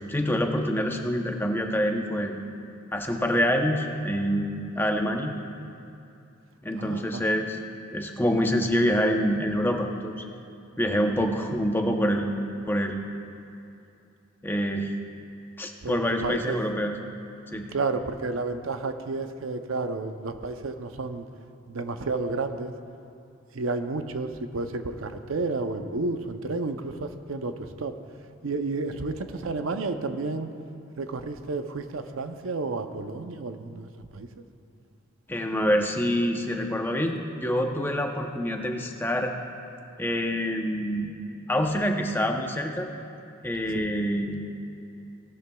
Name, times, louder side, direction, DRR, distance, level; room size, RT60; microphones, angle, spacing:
voice 1, 0.1-2.4 2.9-5.3 6.6-7.6 7.9-10.2 10.8-12.4 12.7-13.0 14.4-14.9 15.6-17.0 17.5-17.7 35.3-39.3 40.0-41.1 41.5-42.9 43.4-44.4, equal, 10° left, 2 dB, 0.7 m, -26 dB
voice 2, 6.8-7.2 15.8-16.6 17.7-21.3 21.7-22.7 23.5-27.9 28.4-30.5 31.0-34.3 43.7-43.9, right 3 dB, 90° right, 8 dB, 0.6 m, -31 dB
18.0 x 12.5 x 2.3 m, 2.7 s
head